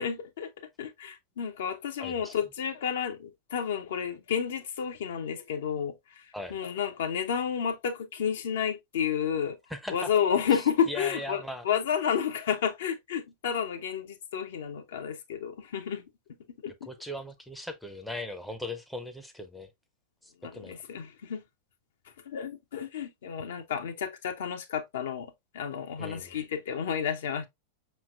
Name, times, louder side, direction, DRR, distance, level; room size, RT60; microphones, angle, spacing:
voice 1, 0.0-6.0 6.5-9.6 9.9-16.0 16.6-16.9 20.4-21.4 22.3-27.5, left 8 dB, 60° left, 0.7 m, -31 dB
voice 2, 2.0-2.4 6.3-6.6 9.7-10.1 10.5-11.6 16.8-19.7 20.2-20.8 26.0-26.4, left 1 dB, ahead, 0.6 m, -39 dB
5.6 x 3.2 x 2.3 m
figure-of-eight pair, 90°, 0 cm